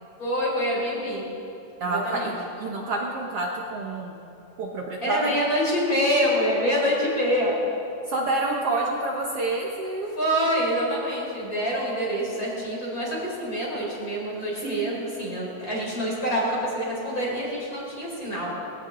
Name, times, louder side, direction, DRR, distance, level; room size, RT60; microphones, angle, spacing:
voice 1, 0.2-1.2 1.8-2.3 5.0-7.6 10.1-18.5, equal, 25° left, -5 dB, 4.8 m, -26 dB
voice 2, 1.8-4.2 4.6-5.4 8.0-10.1 14.6-14.9, right 2 dB, 60° right, -1 dB, 1.9 m, -28 dB
20.5 x 17.5 x 3.9 m, 2.8 s
omnidirectional pair, 3.4 m